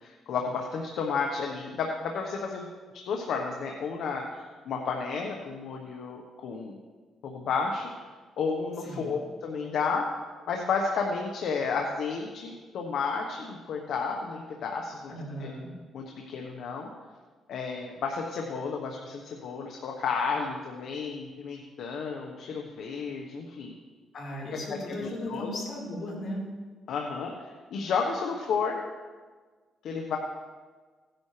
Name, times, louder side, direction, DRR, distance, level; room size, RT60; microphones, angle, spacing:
voice 1, 0.0-2.6 3.0-6.8 7.2-7.9 8.4-10.1 10.5-15.0 15.4-15.5 15.9-16.9 17.5-23.7 24.5-24.6 25.0-25.5 26.9-27.3 27.7-28.8 29.8-30.2, left 5 dB, 70° left, 1 dB, 1.3 m, -32 dB
voice 2, 8.8-9.2 15.1-15.7 24.1-26.4, left 1 dB, 55° left, -3 dB, 4.6 m, -36 dB
17.5 x 10.5 x 3.4 m, 1.4 s
cardioid pair, 90°, 0 cm